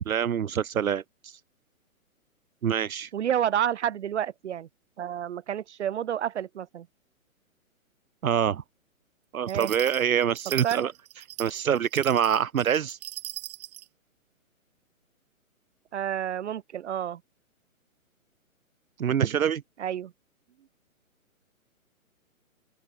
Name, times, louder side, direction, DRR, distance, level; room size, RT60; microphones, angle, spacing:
voice 1, 0.1-1.4 2.6-3.1 8.2-8.6 9.3-10.9 11.4-13.0 19.0-19.6, right 8 dB, 75° right, 1.1 m, -25 dB
voice 2, 3.1-4.7 5.0-6.9 9.5-9.7 10.6-10.8 15.9-17.2 19.8-20.1, right 10 dB, 55° right, 1.7 m, -29 dB
sound 1, 9.5-13.9, right 16 dB, 30° right, 1.4 m, -40 dB
open air
hypercardioid pair, 150°, 42 cm